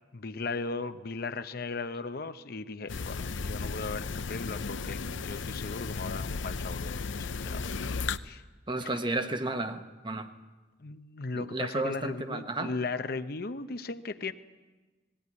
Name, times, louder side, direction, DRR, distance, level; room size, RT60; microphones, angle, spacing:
voice 1, 0.1-8.0 8.2-8.4 8.8-9.0 10.8-14.3, left 3 dB, 55° left, 10 dB, 0.7 m, -37 dB
sound 1, 2.9-8.2, left 4 dB, 85° left, 0.7 m, -35 dB
voice 2, 8.7-10.3 11.3-12.7, right 2 dB, 25° right, 8 dB, 1.0 m, -32 dB
19.5 x 17.0 x 9.5 m, 1.2 s
head